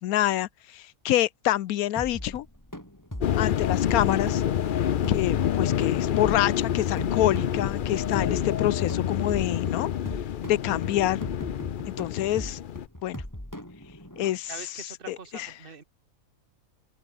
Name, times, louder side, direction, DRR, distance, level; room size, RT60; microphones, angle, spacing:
voice 1, 0.0-2.5 3.4-4.4 5.1-9.9 10.5-11.2 11.9-12.6 13.0-13.2 14.2-14.5 15.1-15.5, left 13 dB, 80° left, 1.1 m, -27 dB
sound 1, 2.0-14.3, left 1 dB, 10° left, 5.0 m, -40 dB
sound 2, 3.2-12.9, left 9 dB, 60° left, 0.5 m, -27 dB
voice 2, 14.5-15.8, right 6 dB, 40° right, 1.9 m, -43 dB
open air
omnidirectional pair, 1.5 m